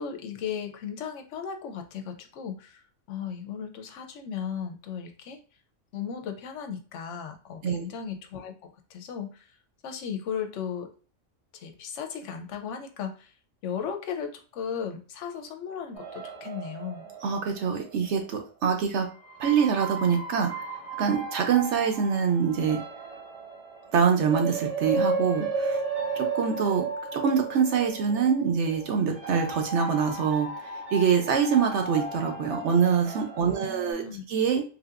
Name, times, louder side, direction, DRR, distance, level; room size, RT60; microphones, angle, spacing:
voice 1, 0.0-5.4 5.9-9.6 9.8-10.9 11.5-13.3 13.6-17.0 33.4-34.2, left 7 dB, 70° left, 5 dB, 0.8 m, -36 dB
sound 1, 15.9-18.5 19.2-33.9, right 3 dB, 35° right, 0.7 m, -34 dB
voice 2, 17.2-19.1 19.4-20.5 21.0-22.8 23.9-25.8 26.2-26.9 27.1-30.5 30.9-34.0 34.3-34.6, right 6 dB, 65° right, 4 dB, 0.9 m, -24 dB
3.4 x 2.7 x 2.4 m, 0.37 s
omnidirectional pair, 1.3 m